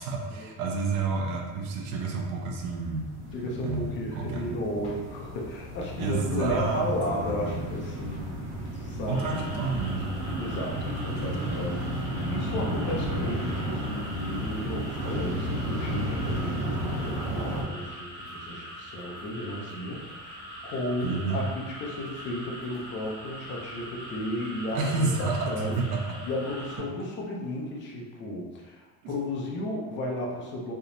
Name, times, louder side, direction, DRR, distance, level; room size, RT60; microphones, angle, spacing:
voice 1, 0.0-3.1 3.6-4.5 6.0-7.7 9.0-10.2 11.0-11.6 21.0-21.5 24.7-26.2 29.0-29.1, right 4 dB, 90° right, 1 dB, 0.7 m, -30 dB
sound 1, 0.6-0.8 1.0-17.6, equal, 55° right, 1.1 m, -33 dB
voice 2, 3.3-8.4 8.7-9.2 10.4-25.8 26.2-30.7, left 1 dB, 35° left, -2 dB, 0.5 m, -34 dB
Drum kit, 4.8-5.7 5.9-6.0 6.2-7.3 7.6-7.7 7.8-8.4 8.6-8.9 9.2-9.3 9.5-9.6 9.7-10.6 10.8-10.9 11.1-11.7 11.9-12.2 12.5-12.6 12.7-12.8 13.0-13.8 14.1-14.2 14.4-14.9 15.2-15.5 15.7-15.8 16.0-16.1 16.3-17.1 17.4-17.5 17.6-17.7, right 2 dB, 80° left, 0.9 m, -47 dB
sound 2, 9.1-26.8, equal, 20° right, 0.8 m, -42 dB
3.4 x 2.8 x 2.6 m, 1.3 s
cardioid pair, 180°, 33 cm